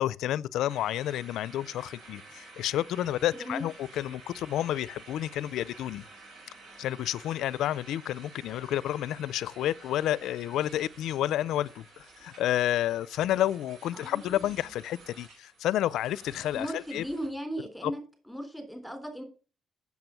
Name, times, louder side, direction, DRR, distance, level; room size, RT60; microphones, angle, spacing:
voice 1, 0.0-6.0 6.8-17.0 17.8-17.9, left 12 dB, 85° left, 0.4 m, -30 dB
sound 1, 0.7-17.3, right 3 dB, 65° right, 4.7 m, -51 dB
voice 2, 3.3-3.7 13.9-14.4 16.5-18.0 18.3-19.2, equal, ahead, 3.8 m, -37 dB
8.0 x 7.1 x 5.7 m
cardioid pair, 90°, 0 cm